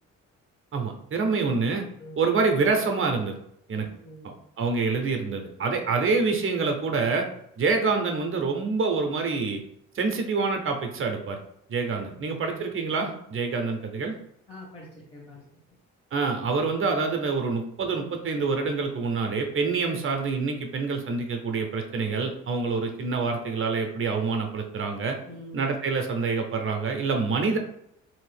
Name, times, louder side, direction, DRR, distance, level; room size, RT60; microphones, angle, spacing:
voice 1, 0.7-1.9 2.2-3.3 3.7-3.9 4.2-7.3 7.6-9.6 9.9-11.4 11.7-14.1 16.1-25.2 25.5-27.6, right 4 dB, 45° right, 4 dB, 0.6 m, -26 dB
voice 2, 3.7-4.4 12.1-12.6 14.5-15.4 25.3-25.6, equal, 20° left, -5 dB, 1.1 m, -45 dB
3.0 x 2.7 x 3.4 m, 0.74 s
cardioid pair, 90°, 30 cm